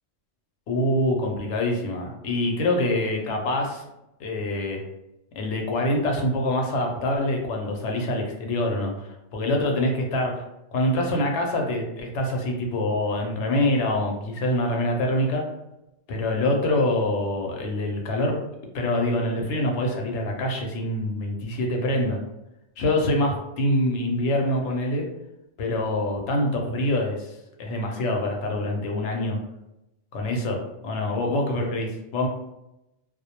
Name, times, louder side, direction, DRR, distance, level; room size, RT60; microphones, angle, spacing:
voice 1, 0.7-3.8 4.2-4.8 5.4-10.4 10.7-15.4 16.1-18.4 18.7-22.2 22.8-25.1 25.6-29.4 30.1-32.3, left 1 dB, 80° left, 1 dB, 0.9 m, -25 dB
2.2 x 2.1 x 2.8 m, 0.89 s
omnidirectional pair, 1.2 m